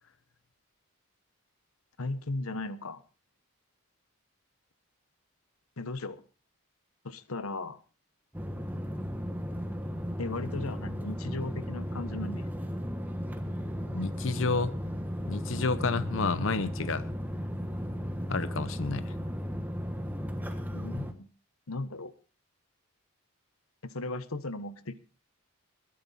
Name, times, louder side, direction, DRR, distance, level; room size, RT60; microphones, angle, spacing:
voice 1, 2.0-3.0 5.8-6.2 7.0-7.8 10.2-12.5 20.7-21.3 21.7-22.1 23.8-25.0, left 2 dB, 80° left, 1.1 m, -36 dB
sound 1, 8.3-21.1, equal, 10° right, 1.3 m, -35 dB
voice 2, 13.9-14.7 15.3-17.1 18.3-19.1, left 4 dB, 60° left, 0.7 m, -30 dB
21.0 x 11.0 x 4.2 m
head